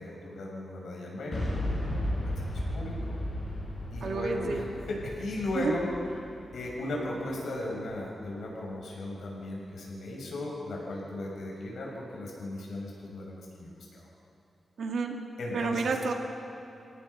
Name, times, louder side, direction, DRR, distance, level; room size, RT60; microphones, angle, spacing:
voice 1, 0.0-3.2 3.9-5.9 6.5-14.1 15.4-15.8, left 1 dB, 90° left, -3 dB, 6.3 m, -36 dB
Boom, 1.3-7.2, left 1 dB, 35° left, 6.7 m, -34 dB
voice 2, 4.0-4.6 5.5-5.8 14.8-15.2 15.5-16.1, right 4 dB, 70° right, 3 dB, 2.0 m, -30 dB
29.0 x 17.0 x 5.7 m, 2.8 s
wide cardioid pair, 165°, 0 cm